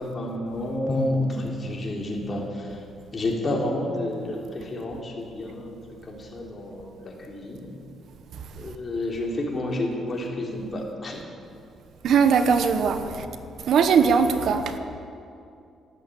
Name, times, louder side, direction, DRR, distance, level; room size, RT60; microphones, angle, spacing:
voice 1, 0.0-2.8 3.1-5.8 6.1-7.8 8.6-11.2 13.1-13.2, left 1 dB, 35° left, 3.5 m, -30 dB
voice 2, 12.0-13.3 13.6-14.8, right 6 dB, 70° right, 1.0 m, -20 dB
13.0 x 12.5 x 8.4 m
cardioid pair, 90°, 0 cm